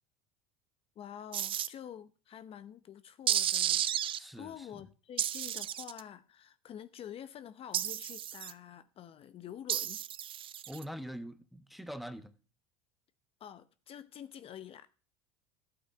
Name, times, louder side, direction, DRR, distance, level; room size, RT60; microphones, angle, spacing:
voice 1, 1.0-10.0 13.4-14.9, left 9 dB, 40° left, 0.8 m, -48 dB
sound 1, 1.3-1.7 3.3-4.2 5.2-6.0 7.7-8.5 9.7-10.8, right 10 dB, 35° right, 0.6 m, -32 dB
voice 2, 4.2-4.9 10.7-12.3, equal, ahead, 1.1 m, -44 dB
12.0 x 8.8 x 5.9 m
supercardioid pair, 100°, 15 cm